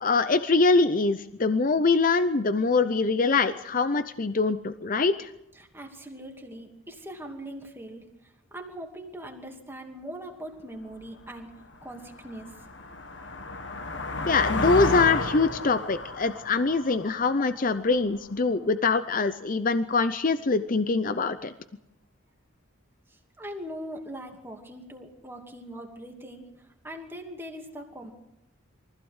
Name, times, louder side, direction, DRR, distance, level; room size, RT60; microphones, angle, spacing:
voice 1, 0.0-5.3 14.3-21.5, left 4 dB, 40° left, 12 dB, 0.7 m, -24 dB
voice 2, 5.5-11.5 11.8-12.5 23.1-28.1, equal, 10° right, 2 dB, 2.5 m, -41 dB
sound 1, 11.0-11.1 11.6-18.2, left 2 dB, 65° left, 1.7 m, -32 dB
23.5 x 15.5 x 8.1 m, 0.89 s
head